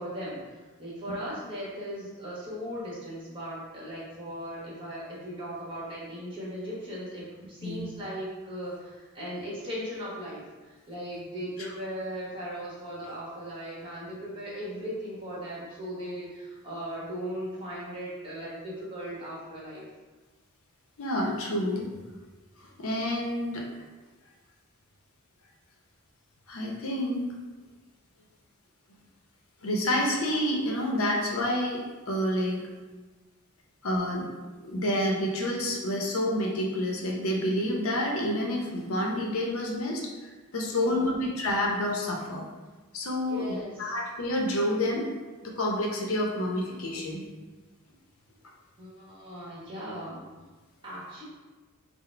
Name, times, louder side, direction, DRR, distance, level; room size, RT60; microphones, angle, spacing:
voice 1, 0.0-19.8 40.7-41.1 43.3-43.9 48.8-50.3 50.8-51.2, equal, 25° right, -7 dB, 1.2 m, -38 dB
voice 2, 21.0-21.9 22.6-23.7 26.5-27.3 29.6-32.6 33.8-34.3 34.7-42.4 42.9-45.0 45.4-47.2, left 1 dB, 70° left, -1 dB, 0.7 m, -29 dB
3.8 x 2.1 x 4.3 m, 1.3 s
head